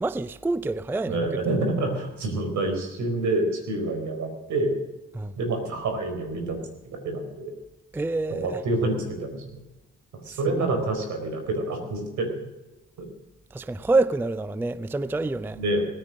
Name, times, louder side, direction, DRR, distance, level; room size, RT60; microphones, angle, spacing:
voice 1, 0.0-1.4 5.1-5.4 7.9-8.6 10.3-10.8 13.5-15.6, right 2 dB, 5° right, 0.4 m, -27 dB
voice 2, 1.1-4.8 5.4-6.6 6.8-7.5 8.3-9.6 10.1-12.3 13.0-13.1 15.6-15.8, right 2 dB, 75° right, 4.5 m, -27 dB
18.0 x 10.0 x 6.5 m
cardioid pair, 90°, 30 cm